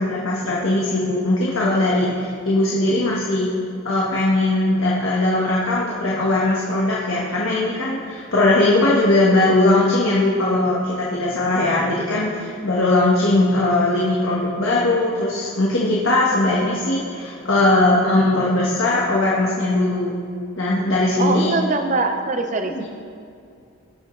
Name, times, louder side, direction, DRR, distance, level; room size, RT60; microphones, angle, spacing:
voice 1, 0.0-3.5 3.8-20.1 20.6-21.5 22.7-22.8, left 2 dB, 70° left, -5 dB, 1.3 m, -19 dB
voice 2, 21.2-22.8, right 3 dB, 35° right, 6 dB, 0.6 m, -22 dB
18.0 x 6.6 x 3.2 m, 2.4 s
head